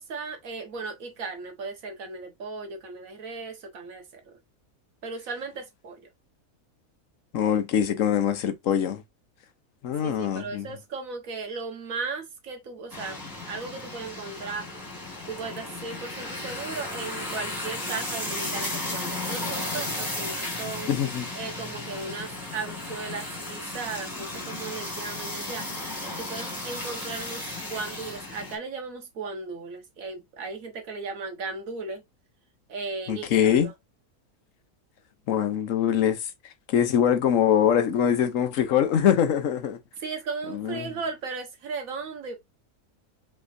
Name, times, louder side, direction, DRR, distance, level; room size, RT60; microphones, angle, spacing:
voice 1, 0.0-4.4 5.0-6.0 10.0-13.2 13.4-14.7 15.3-20.9 21.3-25.7 26.0-32.0 32.7-33.7 40.0-42.4, right 4 dB, 60° right, 1.6 m, -36 dB
voice 2, 7.3-9.0 9.8-10.7 20.9-21.3 33.1-33.7 35.3-36.3 36.7-39.8 40.5-40.9, left 9 dB, 65° left, 1.0 m, -23 dB
sound 1, 12.9-28.6, left 2 dB, 15° left, 1.8 m, -34 dB
5.3 x 3.6 x 2.6 m
omnidirectional pair, 1.6 m